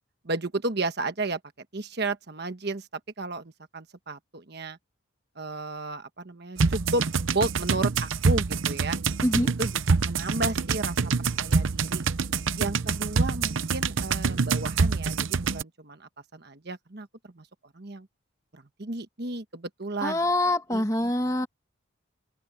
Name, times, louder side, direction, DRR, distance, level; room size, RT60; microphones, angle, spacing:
voice 1, 0.2-1.4 1.7-2.9 3.2-4.8 5.4-9.0 9.6-9.7 10.1-11.0 11.4-12.0 12.6-17.1 17.3-17.5 17.7-18.1 18.5-20.2 20.7-20.8, right 2 dB, 50° right, 1.3 m, -33 dB
sound 1, 6.6-15.6, right 4 dB, 65° right, 0.7 m, -26 dB
voice 2, 9.2-9.5 20.0-21.5, left 1 dB, 15° left, 1.9 m, -25 dB
open air
head